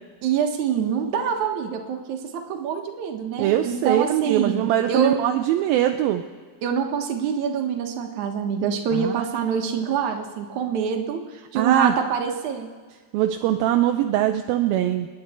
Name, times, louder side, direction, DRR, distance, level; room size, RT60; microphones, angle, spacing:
voice 1, 0.2-5.2 6.6-11.2 11.5-12.7, right 7 dB, 60° right, 3 dB, 2.5 m, -25 dB
voice 2, 3.4-6.2 8.9-9.2 9.5-9.6 11.6-11.9 13.1-15.1, right 12 dB, 80° right, 5 dB, 2.4 m, -22 dB
28.0 x 10.0 x 4.4 m, 1.5 s
omnidirectional pair, 4.4 m